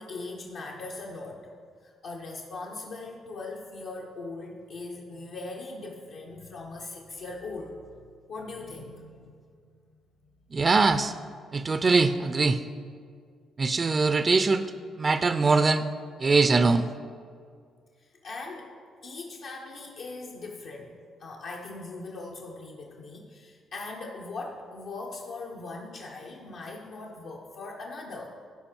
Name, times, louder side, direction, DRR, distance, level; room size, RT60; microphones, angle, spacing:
voice 1, 0.0-1.5 1.8-7.9 8.3-9.7 18.0-18.8 19.0-28.4, left 3 dB, 75° left, -2 dB, 0.9 m, -40 dB
voice 2, 10.5-11.1 11.5-12.6 13.6-14.7 15.0-15.8 16.2-16.9, right 4 dB, 35° right, 11 dB, 0.4 m, -22 dB
12.5 x 4.8 x 4.5 m, 2.1 s
cardioid pair, 90°, 0 cm